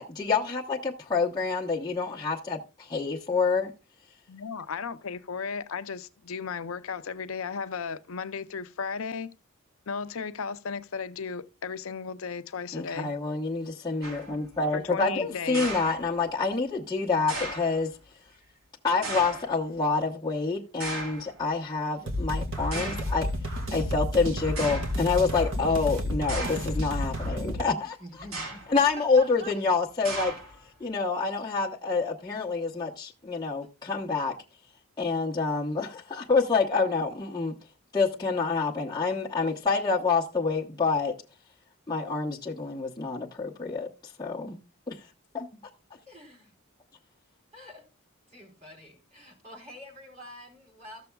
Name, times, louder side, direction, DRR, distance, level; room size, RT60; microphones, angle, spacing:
voice 1, 0.0-3.7 12.7-17.9 18.8-23.3 23.7-28.2 28.7-30.3 30.8-34.4 35.0-37.5 37.9-41.1 41.9-44.6 44.9-45.0 45.3-45.5, left 4 dB, 20° left, 1.0 m, -27 dB
voice 2, 4.3-9.3 9.9-13.1 14.7-15.7, left 5 dB, 70° left, 0.6 m, -35 dB
sound 1, 14.0-14.4 15.5-16.4 17.3-17.8 19.0-19.6 20.8-21.3 22.1-22.2 22.7-23.2 24.0-24.1 24.6-25.0 26.3-26.8 28.2-28.8 30.0-30.7, right 2 dB, 80° right, 3.5 m, -36 dB
sound 2, 22.1-27.6, left 1 dB, 60° right, 1.9 m, -31 dB
voice 3, 28.0-28.6 29.0-29.5 32.3-32.4 46.1-46.5 47.5-47.8 48.3-51.1, right 1 dB, 30° right, 4.1 m, -46 dB
14.5 x 6.8 x 2.3 m
head